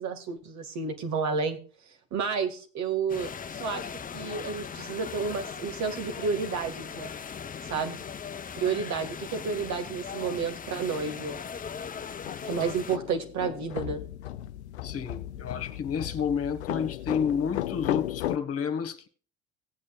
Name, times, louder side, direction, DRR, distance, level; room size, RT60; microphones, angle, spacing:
voice 1, 0.0-1.6 2.1-7.1 7.6-8.0 8.6-11.4 12.4-14.0, right 5 dB, 55° right, 2.1 m, -31 dB
sound 1, 3.1-13.0, left 7 dB, 25° left, 0.8 m, -39 dB
sound 2, 11.8-18.4, left 13 dB, 90° left, 0.5 m, -35 dB
voice 2, 14.8-19.1, left 7 dB, 45° left, 1.7 m, -30 dB
17.5 x 8.6 x 2.4 m
hypercardioid pair, 60°, 33 cm